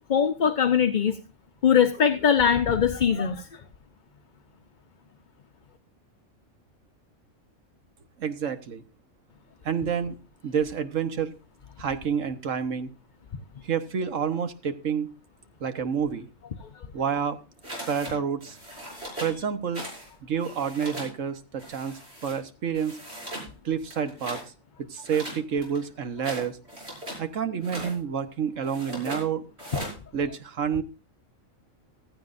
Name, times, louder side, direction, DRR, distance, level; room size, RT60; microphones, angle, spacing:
voice 1, 0.1-1.2 1.6-3.5 19.1-19.2, left 7 dB, 45° left, 7 dB, 0.8 m, -21 dB
voice 2, 8.2-8.8 9.6-10.2 10.4-11.4 11.8-12.9 13.6-15.1 15.6-16.3 16.9-17.4 17.9-18.6 19.2-19.9 20.2-23.0 23.6-24.4 24.9-26.6 27.2-29.5 30.1-30.8, right 7 dB, 75° right, 10 dB, 1.5 m, -29 dB
sound 1, 17.6-18.1 18.4-19.4 19.7-20.1 20.3-21.1 21.6-22.4 22.8-23.5 23.9-24.5 25.0-27.2 27.6-28.0 28.6-29.2 29.6-30.0, right 1 dB, 55° right, 6.6 m, -38 dB
15.0 x 14.0 x 2.6 m, 0.31 s
omnidirectional pair, 1.3 m